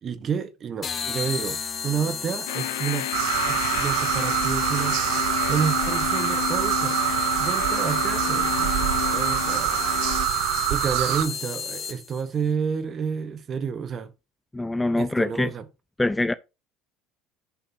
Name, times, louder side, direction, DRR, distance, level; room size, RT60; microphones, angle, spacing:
voice 1, 0.0-3.1 3.5-7.0 7.4-9.8 10.7-14.1 14.9-15.7, right 7 dB, 40° right, 1.3 m, -30 dB
sound 1, 0.8-12.2, left 6 dB, 40° left, 1.5 m, -33 dB
sound 2, 2.5-10.3, left 15 dB, 85° left, 0.7 m, -31 dB
sound 3, 3.1-11.3, right 14 dB, 75° right, 0.8 m, -25 dB
voice 2, 14.5-15.5 16.0-16.3, left 2 dB, 10° left, 0.5 m, -24 dB
10.0 x 7.3 x 2.9 m
supercardioid pair, 90°, 0 cm